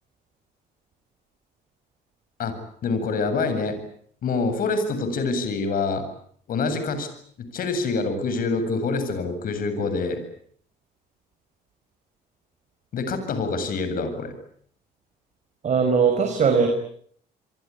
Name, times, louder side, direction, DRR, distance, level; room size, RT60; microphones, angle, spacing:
voice 1, 2.8-3.8 4.2-6.0 6.5-7.1 7.4-10.2 12.9-14.3, left 4 dB, 55° left, 10 dB, 7.9 m, -26 dB
voice 2, 15.6-16.7, right 6 dB, 45° right, 4 dB, 5.7 m, -19 dB
29.0 x 23.5 x 8.6 m, 0.62 s
cardioid pair, 110°, 17 cm